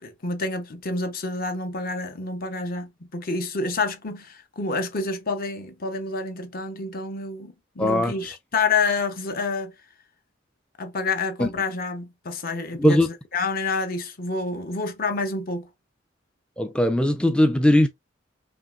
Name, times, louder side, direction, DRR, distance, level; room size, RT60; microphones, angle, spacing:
voice 1, 0.0-9.7 10.8-13.0 13.3-15.7, left 3 dB, 50° left, 0.8 m, -28 dB
voice 2, 7.8-8.1 11.4-11.5 12.8-13.1 16.6-17.9, left 1 dB, 5° left, 0.3 m, -19 dB
5.3 x 3.0 x 2.5 m
head